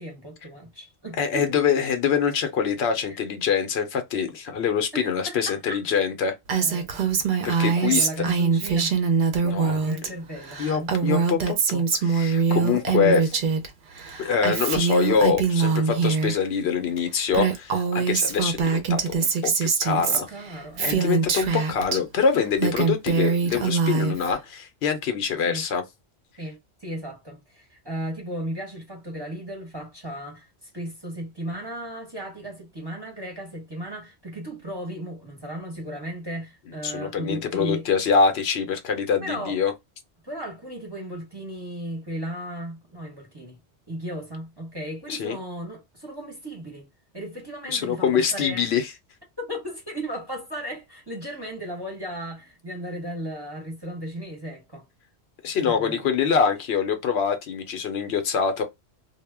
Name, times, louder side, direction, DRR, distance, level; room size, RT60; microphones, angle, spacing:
voice 1, 0.0-1.6 3.0-3.2 4.9-6.1 6.5-7.1 7.7-9.0 9.4-11.1 12.5-13.2 20.0-21.2 25.4-25.7 26.4-30.5 30.7-37.9 39.2-39.6 40.2-43.6 43.9-46.9 47.1-48.7 49.4-54.9 55.6-56.5, right 1 dB, 25° right, 0.7 m, -36 dB
voice 2, 1.2-6.3 7.4-8.1 9.4-9.8 10.6-13.3 14.2-19.3 19.6-20.3 20.8-25.8 36.8-39.7 45.1-45.4 47.7-48.9 55.4-58.6, left 6 dB, 70° left, 0.8 m, -24 dB
Female speech woman speaking, 6.5-10.1 10.4-13.7 14.0-16.4 17.0-17.1 17.3-22.0 22.4-24.3, right 5 dB, 60° right, 0.6 m, -23 dB
2.1 x 2.0 x 3.3 m
omnidirectional pair, 1.1 m